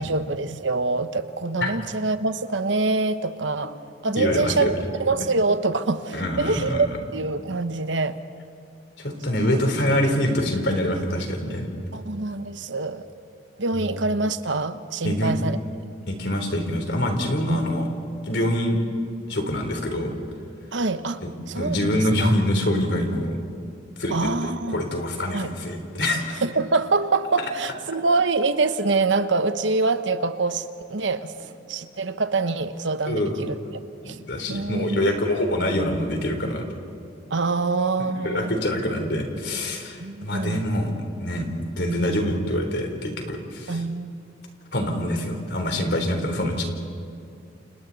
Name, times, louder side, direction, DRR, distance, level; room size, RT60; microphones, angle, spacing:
voice 1, 0.0-3.8 4.0-8.2 9.3-9.8 11.9-13.0 13.6-15.6 17.5-17.7 20.7-21.2 21.5-22.3 24.1-24.8 25.3-25.5 26.4-33.6 34.0-34.2 34.5-35.1 37.3-38.6 40.0-40.6 43.7-44.1, right 3 dB, 85° right, 10 dB, 1.1 m, -25 dB
voice 2, 4.2-4.8 6.1-6.8 9.0-11.7 13.7-13.8 15.0-15.3 16.1-17.9 18.2-18.8 19.3-20.1 21.2-21.3 21.6-23.4 24.0-24.2 24.7-26.4 33.1-33.4 34.0-36.7 38.0-40.9 41.2-41.5 41.8-43.8 44.7-46.6, left 1 dB, 65° left, 4 dB, 3.6 m, -25 dB
30.0 x 28.5 x 4.1 m, 2.5 s
head